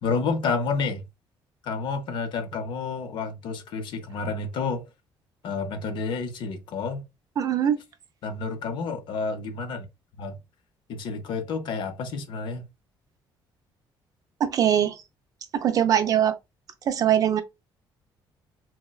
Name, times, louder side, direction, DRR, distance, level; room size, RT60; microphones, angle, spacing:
voice 1, 0.0-1.0 1.6-4.9 5.4-7.1 8.2-9.9 10.2-10.4 10.9-12.7, left 4 dB, 65° left, 0.6 m, -30 dB
voice 2, 7.4-7.8 14.4-15.0 15.5-16.3 16.9-17.4, right 9 dB, 40° right, 0.4 m, -22 dB
4.0 x 2.1 x 2.2 m
cardioid pair, 165°, 9 cm